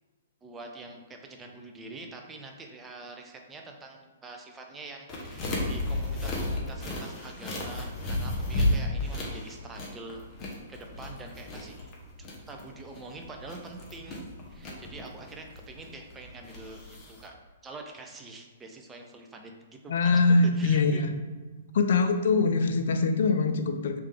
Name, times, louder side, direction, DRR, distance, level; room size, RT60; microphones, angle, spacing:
voice 1, 0.4-10.2 10.7-11.9 12.5-17.4 17.6-19.5 19.8-20.1 20.5-21.2, right 3 dB, 15° right, 2 dB, 0.5 m, -45 dB
sound 1, 5.1-17.3, left 1 dB, 25° left, 0.9 m, -33 dB
voice 2, 19.9-21.1 21.7-24.0, left 3 dB, 60° left, 7 dB, 0.4 m, -23 dB
3.3 x 3.2 x 3.3 m, 1.3 s
figure-of-eight pair, 120°, 0 cm